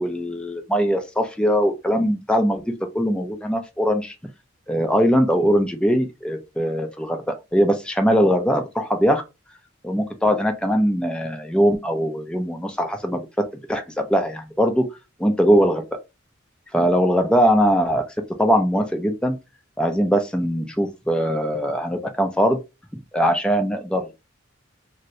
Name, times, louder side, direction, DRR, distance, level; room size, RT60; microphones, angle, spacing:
voice 1, 0.0-4.1 4.7-9.2 9.8-13.2 13.7-14.8 15.2-15.8 16.7-18.0 18.4-19.4 19.8-22.6 22.9-24.1, equal, 5° left, 0.4 m, -21 dB
2.6 x 2.6 x 3.0 m
head